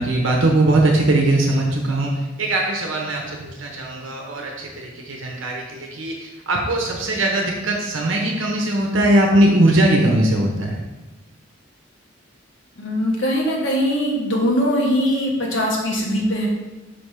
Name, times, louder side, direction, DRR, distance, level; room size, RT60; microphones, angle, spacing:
voice 1, 0.0-10.8, right 1 dB, 75° right, 0 dB, 1.0 m, -20 dB
voice 2, 12.8-16.5, equal, 65° left, -2 dB, 1.4 m, -21 dB
5.6 x 3.5 x 5.6 m, 1.1 s
head